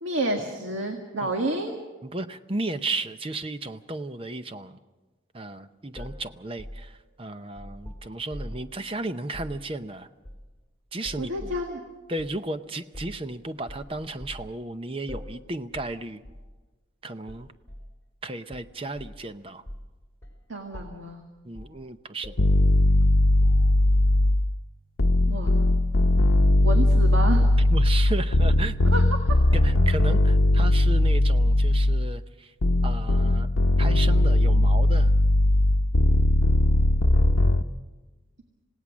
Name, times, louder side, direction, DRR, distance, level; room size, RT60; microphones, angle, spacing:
voice 1, 0.0-1.8 11.2-11.8 20.5-21.2 25.3-25.6 26.6-27.5 28.9-29.4, right 1 dB, 75° right, 3 dB, 1.9 m, -29 dB
voice 2, 2.1-4.8 5.3-6.9 7.2-10.1 10.9-11.5 12.1-16.2 17.0-17.5 18.2-19.6 21.5-22.3 27.7-28.7 29.6-32.2 32.8-33.5 33.8-35.1, right 2 dB, 25° right, 11 dB, 0.7 m, -34 dB
sound 1, 5.9-8.7 9.3-9.6 10.2-10.7 11.0-11.6 12.2-12.4 12.9-13.3 13.7-14.5 15.1-15.4 15.7-16.0 16.2-16.5 17.3-17.9 18.5-19.3 19.6-19.9 20.2-20.4 20.7-21.1 21.5-21.8 22.2-23.9, equal, 15° left, 4.1 m, -42 dB
sound 2, 22.4-24.5 25.0-32.1 32.6-37.6, left 1 dB, 85° left, 0.8 m, -19 dB
27.0 x 17.5 x 6.2 m, 1.2 s
head